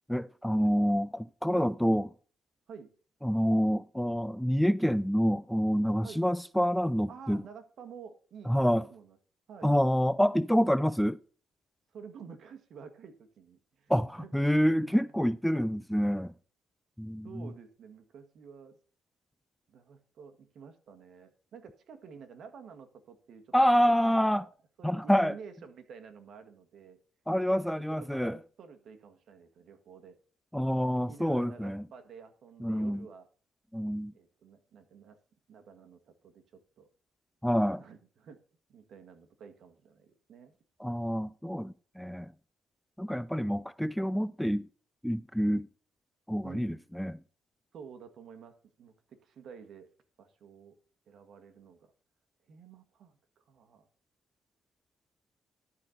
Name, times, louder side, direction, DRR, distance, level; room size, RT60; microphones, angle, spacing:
voice 1, 0.1-2.1 3.2-7.4 8.5-8.8 9.6-11.2 13.9-16.3 17.0-17.5 23.5-24.4 24.8-25.3 27.3-28.4 30.5-31.8 32.6-33.1 33.7-34.1 37.4-37.8 40.8-42.3 43.0-44.7 45.0-45.7 46.3-47.2, equal, ahead, 0.4 m, -27 dB
voice 2, 7.1-9.2 9.5-9.7 11.9-14.4 14.7-15.1 17.2-18.8 19.7-24.5 24.8-27.0 27.5-27.6 28.0-30.1 31.1-33.3 34.1-35.2 35.5-36.9 37.8-38.4 38.7-40.5 46.4-46.8 47.7-48.5 48.8-49.9 50.2-50.7 51.1-51.9 52.5-53.9, right 6 dB, 65° right, 1.7 m, -50 dB
12.0 x 4.2 x 6.5 m
cardioid pair, 90°, 0 cm